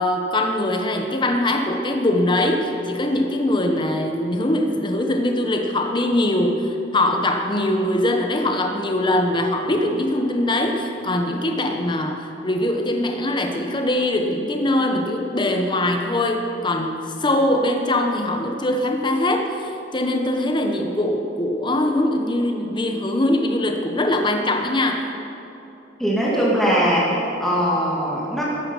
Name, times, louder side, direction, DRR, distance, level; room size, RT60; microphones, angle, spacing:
voice 1, 0.0-19.5 19.9-25.0, left 1 dB, 25° left, 4 dB, 1.0 m, -22 dB
voice 2, 26.0-28.4, equal, ahead, -6 dB, 2.3 m, -20 dB
14.5 x 11.0 x 5.5 m, 3.0 s
head